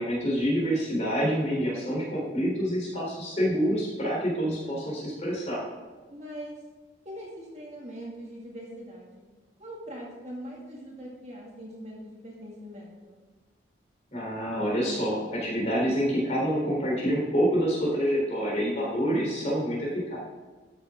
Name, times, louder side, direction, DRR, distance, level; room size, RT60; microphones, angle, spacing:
voice 1, 0.0-5.6 14.1-20.2, equal, 35° left, -4 dB, 3.6 m, -27 dB
voice 2, 6.1-6.6 7.0-9.2 9.6-13.2, equal, 35° right, -3 dB, 2.3 m, -42 dB
13.0 x 7.3 x 3.7 m, 1.3 s
head